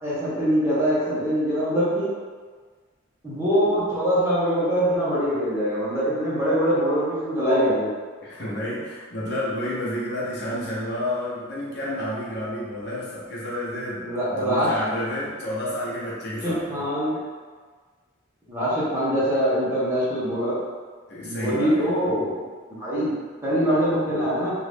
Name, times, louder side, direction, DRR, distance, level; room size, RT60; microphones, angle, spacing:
voice 1, 0.0-2.1 3.2-7.9 14.0-14.7 16.4-17.2 18.5-20.6 21.2-22.3 22.8-23.1 23.4-24.5, equal, 15° right, -10 dB, 1.0 m, -23 dB
voice 2, 8.2-16.9 21.1-22.1, left 1 dB, 55° left, -7 dB, 0.9 m, -30 dB
2.9 x 2.5 x 3.4 m, 1.5 s
head